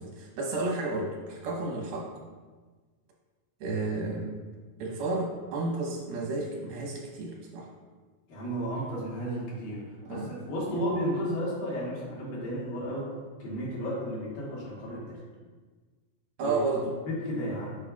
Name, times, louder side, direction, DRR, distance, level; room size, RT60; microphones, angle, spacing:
voice 1, 0.0-2.1 3.6-4.3 4.8-7.7 10.0-10.4 10.7-10.8 16.4-17.0, right 3 dB, 90° right, -1 dB, 2.9 m, -32 dB
voice 2, 8.3-9.8 10.1-13.1 13.4-15.2 16.4-16.6 17.0-17.8, equal, 75° left, -6 dB, 3.3 m, -33 dB
8.5 x 5.0 x 2.4 m, 1.4 s
omnidirectional pair, 4.1 m